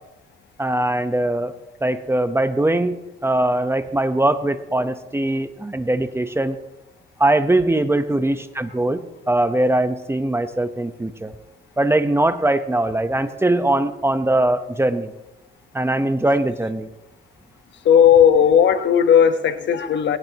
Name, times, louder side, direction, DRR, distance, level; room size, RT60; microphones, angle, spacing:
voice 1, 0.6-1.5 1.8-6.6 7.2-11.3 11.8-15.1 15.7-16.9, right 1 dB, 10° right, 10 dB, 1.0 m, -21 dB
voice 2, 17.8-20.2, left 8 dB, 65° left, 9 dB, 1.2 m, -15 dB
20.0 x 17.0 x 3.0 m, 0.99 s
cardioid pair, 90°, 20 cm